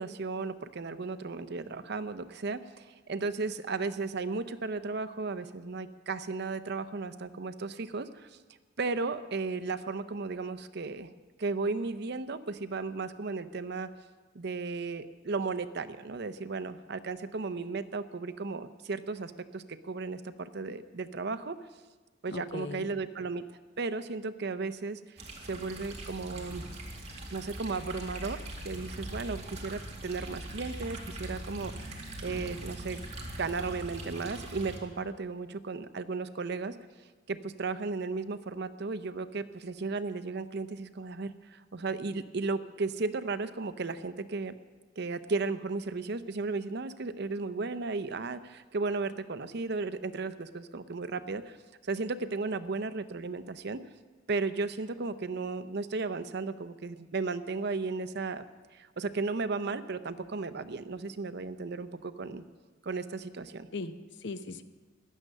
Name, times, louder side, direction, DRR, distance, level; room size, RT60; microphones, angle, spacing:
voice 1, 0.0-8.3 8.8-11.1 11.4-13.9 14.3-21.6 22.2-23.4 23.8-26.6 27.3-33.0 33.4-36.8 37.3-44.5 45.0-51.6 51.8-53.9 54.3-58.4 58.7-62.4 62.8-63.7, right 3 dB, 55° right, 12 dB, 0.7 m, -35 dB
voice 2, 22.3-22.9 63.7-64.6, left 3 dB, 60° left, 11 dB, 0.8 m, -39 dB
sound 1, 25.2-34.8, right 1 dB, 35° right, 2.3 m, -41 dB
15.5 x 11.0 x 6.6 m, 1.4 s
head